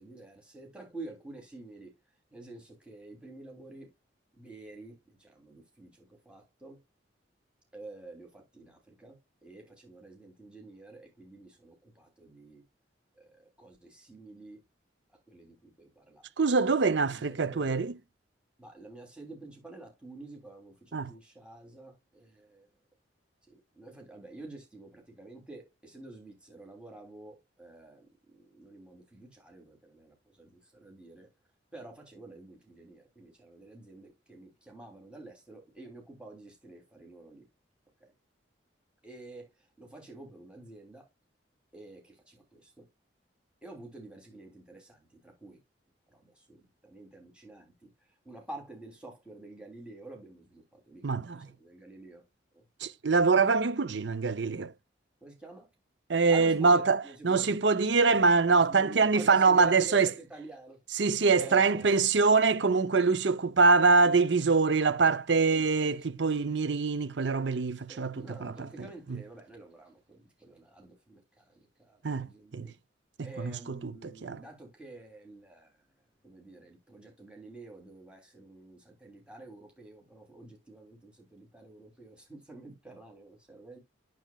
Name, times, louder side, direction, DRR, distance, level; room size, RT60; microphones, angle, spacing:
voice 1, 0.0-1.9 2.3-3.9 4.3-6.8 7.7-12.6 13.1-14.6 15.3-16.3 17.0-17.7 18.6-22.7 23.5-28.1 28.3-31.3 31.7-37.4 38.0-38.1 39.0-41.1 41.7-42.9 43.6-45.6 46.1-47.9 48.2-51.0 51.3-52.2 52.5-52.6 55.2-55.7 56.3-58.2 58.5-60.8 61.3-61.9 65.5-66.0 67.9-72.8 73.2-75.8 76.2-83.8, right 2 dB, 5° right, 3.1 m, -49 dB
voice 2, 16.4-18.0 20.9-21.1 51.0-51.5 52.8-54.7 56.1-60.1 60.9-69.2 72.0-72.7 73.2-74.4, right 4 dB, 70° right, 0.7 m, -25 dB
9.1 x 7.7 x 2.3 m
head